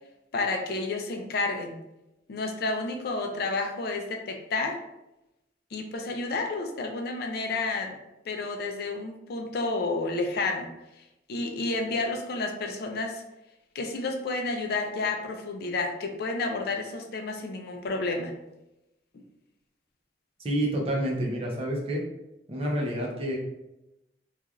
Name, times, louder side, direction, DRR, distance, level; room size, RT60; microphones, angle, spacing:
voice 1, 0.3-1.8 2.3-4.8 5.7-7.9 8.2-10.7 11.3-13.2 13.7-18.3, left 3 dB, 60° left, 3 dB, 0.4 m, -30 dB
voice 2, 20.4-22.0 22.5-23.4, right 1 dB, 35° right, -1 dB, 0.6 m, -28 dB
3.0 x 2.4 x 2.4 m, 0.92 s
head